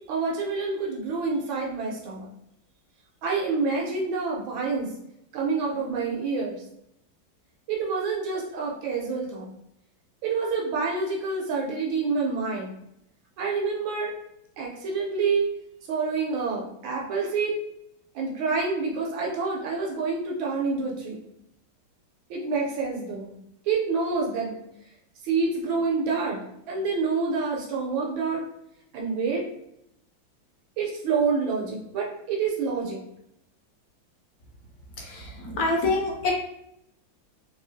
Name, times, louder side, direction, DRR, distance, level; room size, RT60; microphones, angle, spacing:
voice 1, 0.1-2.3 3.2-4.9 5.3-6.6 7.7-9.5 10.2-12.7 13.4-14.1 14.6-15.5 15.9-17.6 18.1-21.2 22.3-23.3 23.7-24.6 25.2-26.4 26.7-28.4 28.9-29.4 30.8-33.0, right 4 dB, 90° right, -2 dB, 1.5 m, -27 dB
voice 2, 35.0-36.3, left 3 dB, 65° left, 0 dB, 1.0 m, -26 dB
3.4 x 2.4 x 2.6 m, 0.78 s
omnidirectional pair, 2.1 m